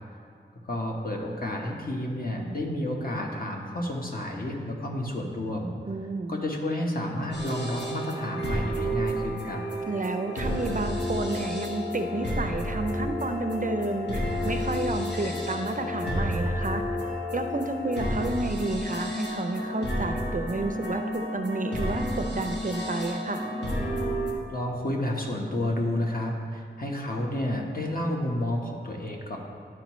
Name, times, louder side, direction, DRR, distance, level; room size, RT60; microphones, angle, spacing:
voice 1, 0.7-5.8 6.3-9.6 24.5-29.4, left 1 dB, 50° left, 0 dB, 1.1 m, -30 dB
voice 2, 5.9-6.3 9.9-16.8 17.3-23.4, right 2 dB, 45° right, 6 dB, 0.5 m, -31 dB
sound 1, 7.3-24.3, equal, 70° left, 1.3 m, -31 dB
11.5 x 4.6 x 3.1 m, 2.2 s
wide cardioid pair, 55°, 19 cm